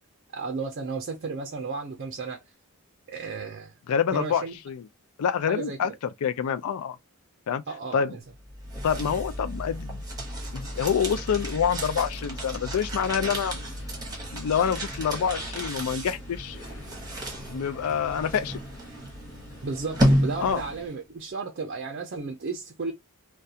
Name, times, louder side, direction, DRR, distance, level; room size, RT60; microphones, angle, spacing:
voice 1, 0.3-2.4 3.1-3.7 4.1-4.6 5.5-5.8 7.7-8.2 19.6-22.9, right 4 dB, 50° right, 0.5 m, -33 dB
voice 2, 3.9-4.8 5.2-5.9 6.2-7.0 7.5-7.6 7.9-8.1 8.8-10.0 10.5-13.6 14.3-16.6 17.5-18.6 20.4-20.6, left 7 dB, 85° left, 0.4 m, -27 dB
sound 1, 8.4-20.9, equal, 15° right, 0.9 m, -31 dB
sound 2, 10.1-20.9, left 1 dB, 65° left, 0.7 m, -47 dB
2.3 x 2.2 x 2.7 m
head